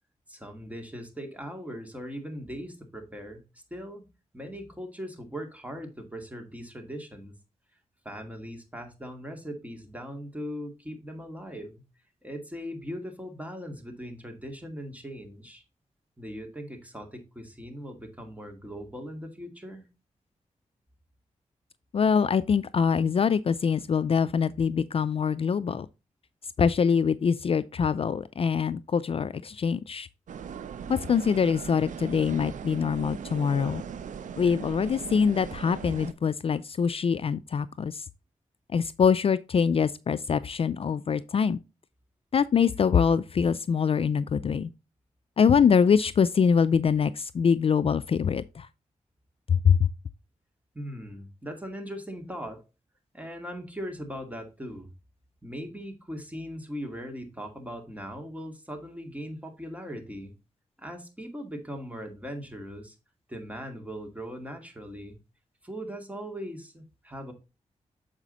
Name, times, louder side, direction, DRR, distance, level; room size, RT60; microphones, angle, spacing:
voice 1, 0.3-3.4 3.7-4.1 4.3-7.3 8.0-11.8 12.2-15.6 16.2-19.9 50.7-52.6 53.1-54.9 55.4-60.3 60.8-63.0 63.3-65.2 65.6-67.3, equal, 10° right, 2.2 m, -39 dB
voice 2, 21.9-25.9 26.6-30.1 30.9-33.8 34.4-38.1 38.7-41.6 42.3-44.7 45.4-48.7 49.5-49.8, left 6 dB, 50° left, 0.4 m, -24 dB
sound 1, 30.3-36.1, right 7 dB, 80° right, 0.6 m, -39 dB
7.3 x 4.9 x 4.0 m
cardioid pair, 60°, 13 cm